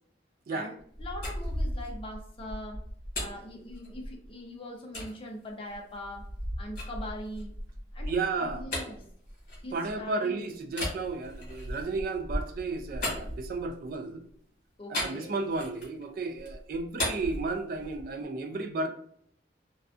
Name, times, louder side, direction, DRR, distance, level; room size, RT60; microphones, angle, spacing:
voice 1, 0.5-2.8 3.2-6.2 6.6-7.5 7.9-8.1 8.4-9.0 9.6-10.6 14.8-15.4, left 1 dB, 30° left, 0.5 m, -42 dB
sound 1, 0.8-4.3 4.9-5.1 5.7-10.1 10.7-13.9 14.9-16.0 16.4-18.2, left 1 dB, 55° left, 1.1 m, -36 dB
voice 2, 8.1-8.6 9.7-14.2 14.9-18.9, right 3 dB, 55° right, 0.3 m, -33 dB
2.3 x 2.3 x 2.4 m
head